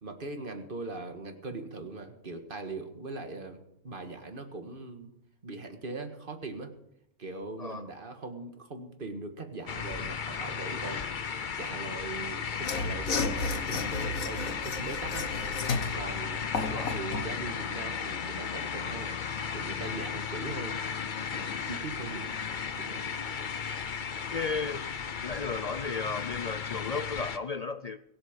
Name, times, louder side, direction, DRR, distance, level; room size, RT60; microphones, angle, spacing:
voice 1, 0.0-5.1 5.4-6.7 7.2-15.3 15.9-20.8 21.3-22.3 22.7-23.0, right 3 dB, 40° right, 5 dB, 1.8 m, -41 dB
sound 1, 9.7-27.4, left 6 dB, 45° left, 0.8 m, -35 dB
Mechanisms / Sawing, 12.6-17.3, left 3 dB, 80° left, 1.8 m, -33 dB
voice 2, 24.3-24.8 25.2-28.0, left 4 dB, 65° left, 11 dB, 0.4 m, -34 dB
23.0 x 8.0 x 5.2 m, 0.78 s
omnidirectional pair, 1.4 m